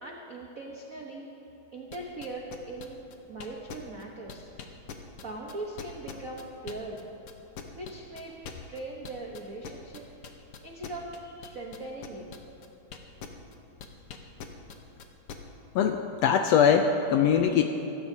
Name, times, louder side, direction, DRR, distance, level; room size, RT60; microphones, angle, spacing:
voice 1, 0.0-1.3 1.7-3.0 3.3-4.5 5.2-7.1 7.7-11.1 11.4-12.3, right 2 dB, 80° right, -2 dB, 0.7 m, -40 dB
sound 1, 1.9-7.0 7.3-13.6 13.8-15.4, left 7 dB, 65° left, 1.5 m, -42 dB
voice 2, 15.7-17.6, left 7 dB, 80° left, 5 dB, 1.5 m, -22 dB
25.5 x 13.5 x 2.8 m, 2.9 s
omnidirectional pair, 3.4 m